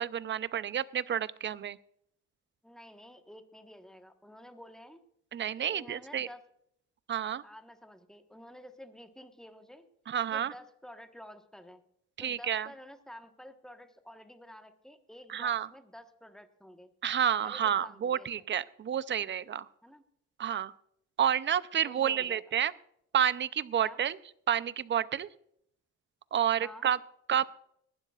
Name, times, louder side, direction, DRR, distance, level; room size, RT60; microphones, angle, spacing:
voice 1, 0.0-1.8 5.3-6.3 7.1-7.4 10.1-10.5 12.2-12.7 15.3-15.7 17.0-19.7 20.4-20.7 21.2-22.7 23.1-24.2 24.5-25.3 26.3-27.0 27.3-27.5, right 9 dB, 40° right, 17 dB, 0.6 m, -30 dB
voice 2, 2.6-5.0 5.6-6.4 7.4-9.9 10.3-11.8 12.2-16.9 17.4-18.3 19.8-20.0 21.8-22.4 23.8-24.0 26.6-26.9, equal, ahead, 7 dB, 1.2 m, -50 dB
20.0 x 11.5 x 2.4 m, 0.70 s
cardioid pair, 90°, 30 cm